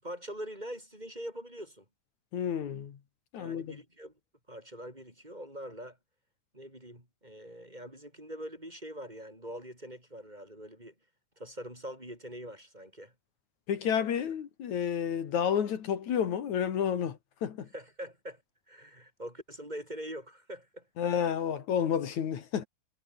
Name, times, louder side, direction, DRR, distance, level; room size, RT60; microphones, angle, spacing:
voice 1, 0.0-1.8 3.4-4.1 4.5-6.0 6.5-10.9 11.4-13.1 13.8-14.1 17.7-18.4 18.7-20.9, equal, 15° right, 7.5 m, -43 dB
voice 2, 2.3-3.0 3.3-3.8 13.7-17.7 21.0-22.7, left 8 dB, 75° left, 3.4 m, -30 dB
omnidirectional pair, 3.3 m